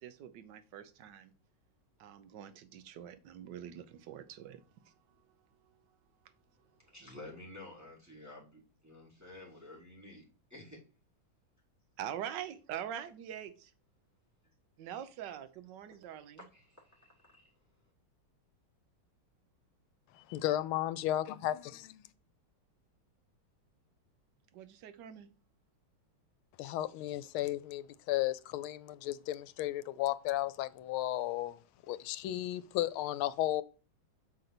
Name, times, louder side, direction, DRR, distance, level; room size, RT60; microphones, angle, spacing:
voice 1, 0.0-1.3 2.0-4.9 5.7-5.8 12.0-13.7 14.8-16.4 24.5-25.3, right 10 dB, 65° right, 1.3 m, -44 dB
voice 2, 6.8-10.8 16.4-17.6, left 2 dB, 10° right, 2.3 m, -52 dB
voice 3, 20.4-22.1 26.6-33.6, left 14 dB, 85° left, 1.4 m, -34 dB
6.7 x 4.0 x 5.9 m
omnidirectional pair, 2.3 m